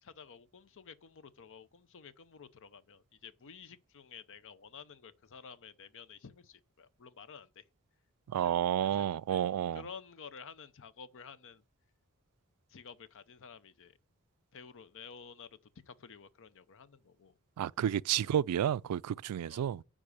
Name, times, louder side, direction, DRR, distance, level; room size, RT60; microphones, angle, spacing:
voice 1, 0.0-7.6 8.3-11.6 12.7-14.0 14.5-15.6 15.9-17.3 18.2-18.3 19.5-19.7, left 6 dB, 60° left, 0.6 m, -52 dB
voice 2, 8.3-9.8 17.6-19.8, right 10 dB, 90° right, 0.3 m, -31 dB
9.9 x 3.7 x 6.8 m
head